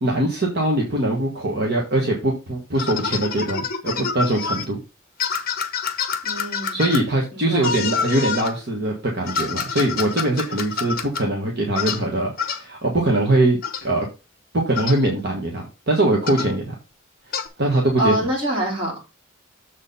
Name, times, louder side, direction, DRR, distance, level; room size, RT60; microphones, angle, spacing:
voice 1, 0.0-4.8 6.7-14.1 14.5-16.7 17.6-18.1, right 1 dB, 50° right, -1 dB, 1.4 m, -22 dB
sound 1, 2.7-4.6 5.2-7.0 7.6-8.5 9.3-11.2 11.7-12.0 12.4-12.6 13.6-13.8 14.7-15.0 16.3-16.5 17.3-17.5, left 6 dB, 45° left, 1.0 m, -27 dB
voice 2, 6.2-6.8 7.3-7.7 18.0-19.1, right 1 dB, 25° right, -3 dB, 3.5 m, -25 dB
7.2 x 4.3 x 5.4 m, 0.30 s
head